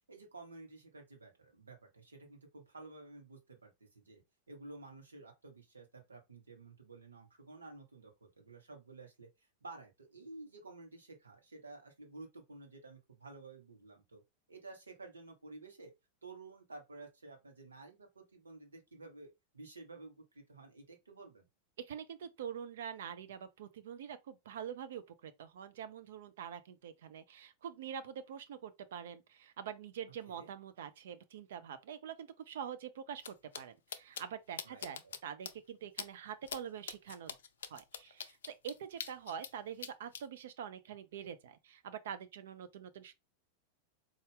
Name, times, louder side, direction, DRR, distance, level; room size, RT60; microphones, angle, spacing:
voice 1, 0.0-4.2 4.5-14.2 14.5-15.9 16.2-21.5 30.3-30.5 34.6-35.2, right 3 dB, 75° right, 1.0 m, -52 dB
voice 2, 21.8-37.3 37.7-43.1, right 8 dB, 60° right, 0.5 m, -45 dB
sound 1, 33.2-33.3 33.5-33.6 33.9-34.2 34.6-35.2 35.5-35.6 36.0-36.1 36.5-36.6 36.9-39.5 39.8-40.2, left 7 dB, 65° left, 0.4 m, -42 dB
4.1 x 2.4 x 3.2 m
figure-of-eight pair, 90°, 0 cm